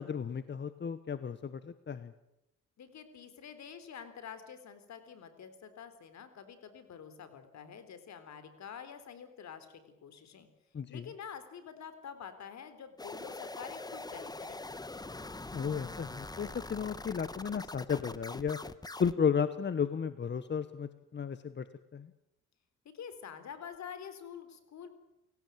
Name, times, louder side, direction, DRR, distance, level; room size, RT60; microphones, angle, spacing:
voice 1, 0.0-2.1 10.7-11.1 15.5-18.6 19.0-21.6 21.9-22.1, left 7 dB, 35° left, 13 dB, 1.2 m, -34 dB
voice 2, 2.8-10.5 10.9-14.6 22.9-24.9, left 7 dB, 65° left, 11 dB, 3.9 m, -47 dB
sound 1, 13.0-19.1, left 2 dB, 15° left, 1.2 m, -43 dB
29.0 x 17.0 x 9.2 m, 0.89 s
cardioid pair, 90°, 30 cm